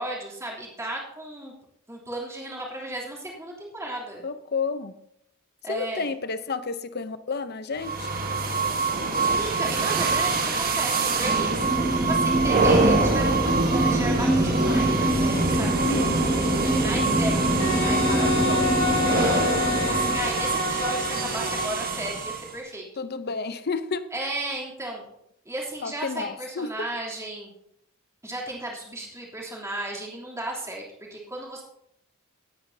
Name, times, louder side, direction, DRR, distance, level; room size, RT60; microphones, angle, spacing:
voice 1, 0.0-1.5 1.9-4.2 5.6-6.1 9.2-11.7 12.1-16.0 16.7-19.0 19.6-22.9 24.1-25.0 25.4-27.5 28.2-31.6, right 1 dB, 15° right, -4 dB, 3.1 m, -34 dB
voice 2, 4.2-4.9 5.7-8.1 15.8-16.2 23.0-24.1 25.8-26.9, left 4 dB, 50° left, 12 dB, 0.7 m, -31 dB
sound 1, 7.8-22.6, right 3 dB, 45° right, 1.5 m, -24 dB
sound 2, 11.6-20.2, right 1 dB, ahead, 1.0 m, -27 dB
Wind instrument woodwind instrument, 17.6-21.9, left 5 dB, 70° left, 1.5 m, -28 dB
18.5 x 9.4 x 2.8 m, 0.77 s
head